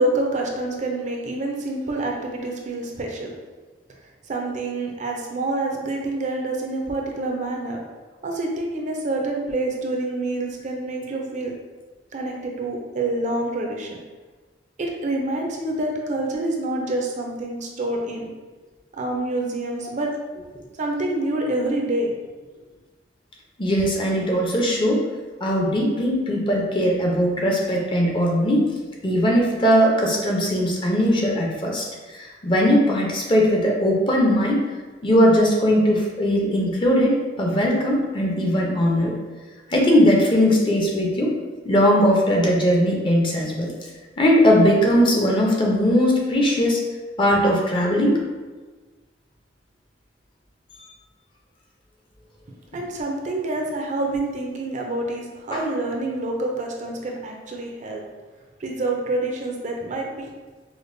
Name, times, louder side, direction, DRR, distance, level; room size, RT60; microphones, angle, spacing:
voice 1, 0.0-3.3 4.3-7.8 8.2-11.5 12.1-14.0 14.8-18.3 19.0-20.1 20.8-22.1 52.7-58.0 58.6-60.3, right 2 dB, 40° right, 0 dB, 0.5 m, -27 dB
voice 2, 23.6-25.0 25.4-28.7 29.0-31.9 32.1-34.6 35.0-39.1 39.7-41.3 41.6-43.7 44.2-46.8 47.2-48.2 55.5-55.6, equal, 25° left, -2 dB, 0.6 m, -19 dB
5.0 x 2.1 x 2.6 m, 1.3 s
head